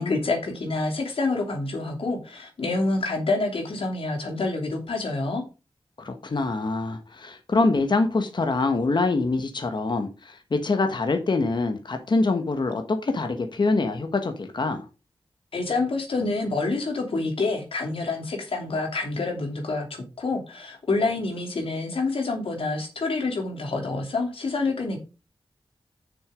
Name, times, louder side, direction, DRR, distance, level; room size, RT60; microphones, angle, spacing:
voice 1, 0.0-5.4 15.5-25.0, left 3 dB, 80° left, 2.9 m, -27 dB
voice 2, 6.0-14.9, left 3 dB, 55° left, 1.4 m, -25 dB
6.9 x 6.8 x 5.1 m
wide cardioid pair, 90°, 9 cm